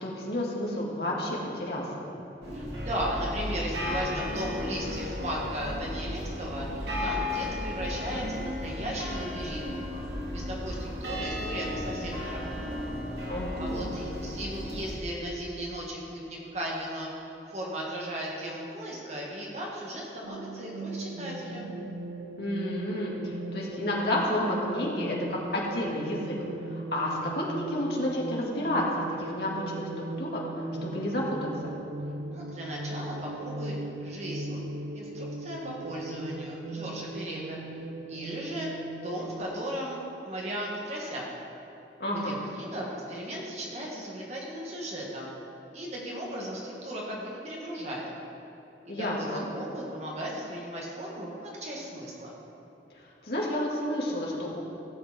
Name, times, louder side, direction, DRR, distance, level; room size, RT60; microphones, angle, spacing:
voice 1, 0.0-1.8 13.3-13.8 22.4-26.4 26.7-28.8 29.2-29.6 30.0-31.4 42.0-42.4 48.9-49.5 53.0-54.6, left 1 dB, 65° left, -4 dB, 2.2 m, -31 dB
sound 1, 2.4-14.9, left 1 dB, 75° right, 2.7 m, -34 dB
voice 2, 2.5-9.7 10.3-12.9 13.6-21.7 32.3-34.6 34.9-37.6 38.1-41.3 42.2-45.3 45.7-48.1 48.8-52.4, equal, 40° right, -4 dB, 2.1 m, -36 dB
sound 2, 20.2-39.4, right 2 dB, 60° right, 0.6 m, -38 dB
16.0 x 7.4 x 4.4 m, 2.9 s
head